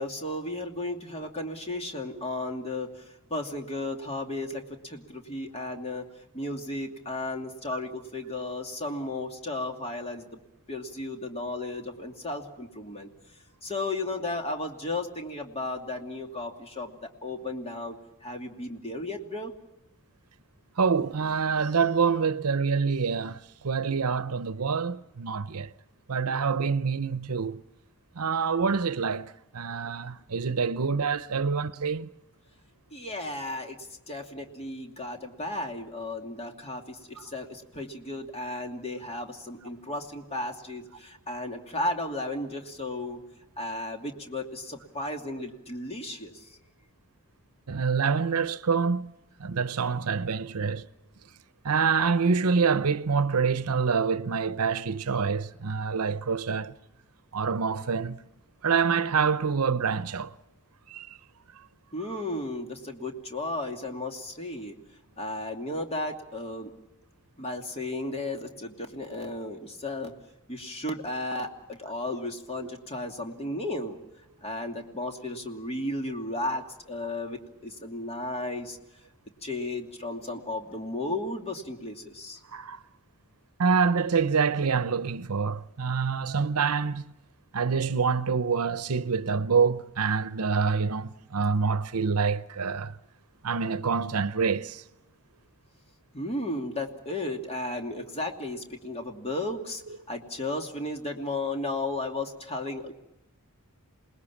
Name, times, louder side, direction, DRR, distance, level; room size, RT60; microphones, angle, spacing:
voice 1, 0.0-3.0 3.3-6.0 6.3-10.4 10.7-13.1 13.6-18.0 18.2-19.5 32.9-43.2 43.6-46.6 61.9-64.8 65.2-66.7 67.4-70.1 70.5-74.0 74.4-78.8 79.4-82.4 96.1-99.8 100.1-102.9, left 2 dB, 30° left, 2.7 m, -34 dB
voice 2, 20.8-23.4 23.6-25.7 26.1-27.6 28.2-32.1 47.7-49.1 49.4-50.9 51.6-56.7 57.3-58.2 58.6-60.3 60.9-61.1 82.5-82.8 83.6-87.0 87.5-92.9 93.4-94.8, right 5 dB, 80° right, 0.8 m, -26 dB
28.0 x 20.5 x 7.2 m
head